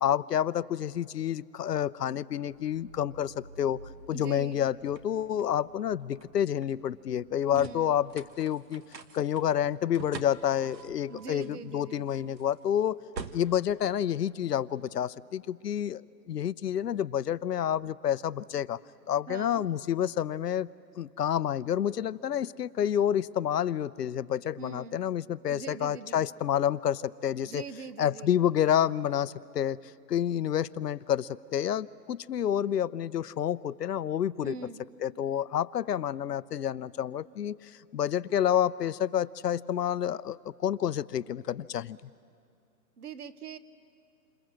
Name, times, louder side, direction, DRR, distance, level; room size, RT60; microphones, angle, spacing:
voice 1, 0.0-3.8 4.1-8.8 9.1-13.0 13.3-18.8 19.1-20.7 21.0-27.6 28.0-29.8 30.1-34.6 35.0-42.0, left 10 dB, 75° left, 18 dB, 0.7 m, -29 dB
sound 1, 2.4-14.8, right 4 dB, 85° right, 1.7 m, -48 dB
voice 2, 4.1-4.6 7.5-7.9 11.1-12.1 19.3-19.7 24.6-25.0 25.5-26.3 27.4-28.4 34.4-34.8 43.0-43.6, right 6 dB, 65° right, 14 dB, 1.4 m, -42 dB
28.5 x 27.0 x 7.7 m, 2.3 s
hypercardioid pair, 175°, 49 cm